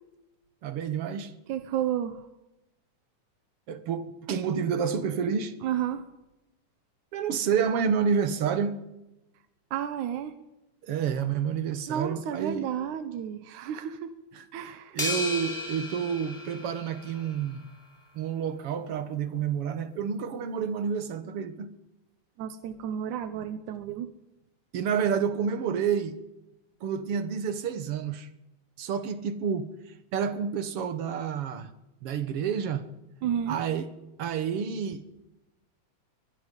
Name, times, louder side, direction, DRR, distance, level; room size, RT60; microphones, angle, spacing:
voice 1, 0.6-1.3 3.7-5.5 7.1-8.8 10.8-12.7 14.3-14.5 14.9-17.6 18.1-21.7 24.7-26.2 26.8-28.3 28.8-29.7 30.1-31.7 32.0-32.9 33.5-33.9 34.2-35.0, right 7 dB, 55° right, 2.1 m, -29 dB
voice 2, 1.5-2.3 5.6-6.1 9.7-10.4 11.9-14.1 14.5-15.0 22.4-24.1 33.2-33.6, right 9 dB, 90° right, 2.5 m, -32 dB
sound 1, 15.0-17.5, left 2 dB, 10° left, 4.1 m, -34 dB
23.0 x 21.0 x 5.4 m
omnidirectional pair, 3.4 m